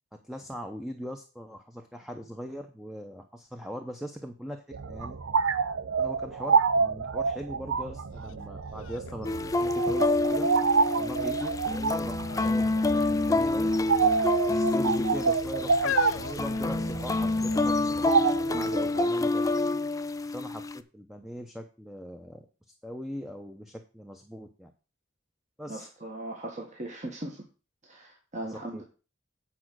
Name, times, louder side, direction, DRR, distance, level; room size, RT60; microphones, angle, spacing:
voice 1, 0.1-5.2 6.0-10.5 11.0-12.2 12.4-13.7 14.5-19.5 20.2-22.4 22.8-24.7 25.6-25.9 28.4-28.8, equal, ahead, 4 dB, 0.7 m, -40 dB
sound 1, 4.7-19.1, right 5 dB, 85° right, 0.6 m, -28 dB
sound 2, 8.2-8.3 8.8-10.3 10.9-11.4 12.2-12.6 12.9-13.0 13.9-14.6 15.3-17.3 18.1-18.2, left 9 dB, 80° left, 0.4 m, -37 dB
sound 3, 9.2-20.8, left 2 dB, 15° left, 0.4 m, -27 dB
voice 2, 25.7-27.4 27.9-28.8, right 1 dB, 40° right, 0 dB, 1.6 m, -39 dB
8.5 x 4.9 x 6.2 m, 0.34 s
head